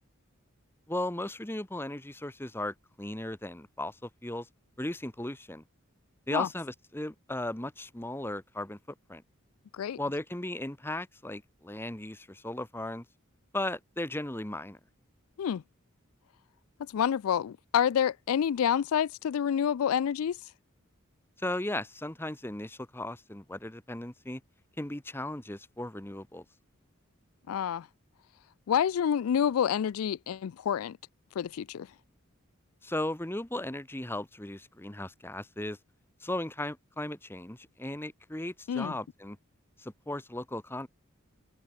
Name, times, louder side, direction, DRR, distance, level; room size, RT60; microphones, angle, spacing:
voice 1, 0.9-4.5 4.8-5.6 6.3-8.8 9.1-9.2 10.0-13.0 13.5-14.8 21.4-24.4 24.8-26.4 32.8-35.8 36.2-39.4 39.8-40.9, left 1 dB, 10° left, 1.1 m, -36 dB
voice 2, 16.9-20.4 27.5-27.9 28.7-31.0 31.4-31.9 38.7-39.0, left 8 dB, 85° left, 0.4 m, -28 dB
head